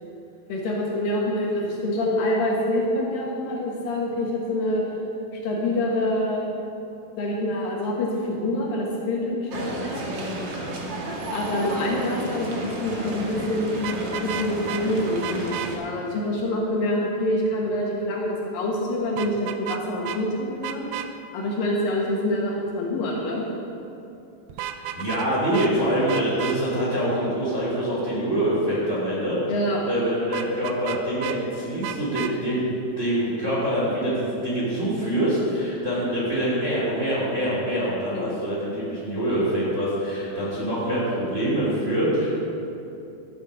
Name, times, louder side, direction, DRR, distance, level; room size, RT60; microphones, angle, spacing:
voice 1, 0.5-4.8 5.4-6.5 7.2-10.0 11.3-13.9 14.2-20.8 21.3-23.4 29.5-29.8 38.1-38.3, left 1 dB, 70° left, -2 dB, 3.0 m, -26 dB
sound 1, 9.5-15.8, right 1 dB, 70° right, 1.1 m, -32 dB
Vehicle horn car horn honking, 13.8-14.8 15.2-15.7 19.2-19.8 20.1-20.2 20.6-21.1 24.5-25.3 25.5-25.7 26.1-26.6 30.3-31.4 31.8-32.3, right 11 dB, 90° right, 2.6 m, -32 dB
voice 2, 24.9-29.4 29.8-42.4, right 1 dB, 20° right, -7 dB, 2.7 m, -25 dB
12.5 x 8.6 x 6.2 m, 2.8 s
omnidirectional pair, 4.5 m